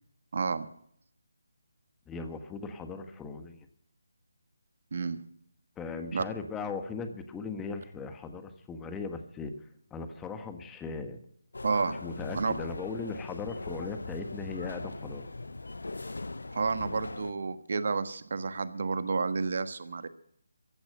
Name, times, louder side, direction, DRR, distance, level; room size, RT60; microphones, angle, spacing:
voice 1, 0.3-0.7 4.9-5.2 6.1-6.2 11.6-12.0 12.3-12.6 16.5-20.1, right 4 dB, 50° right, 12 dB, 1.4 m, -30 dB
voice 2, 2.1-3.7 5.8-11.2 12.0-15.3, left 4 dB, 10° left, 7 dB, 1.4 m, -38 dB
sound 1, 11.5-17.3, left 2 dB, 70° left, 0.9 m, -40 dB
15.5 x 11.0 x 7.6 m, 0.66 s
figure-of-eight pair, 150°, 0 cm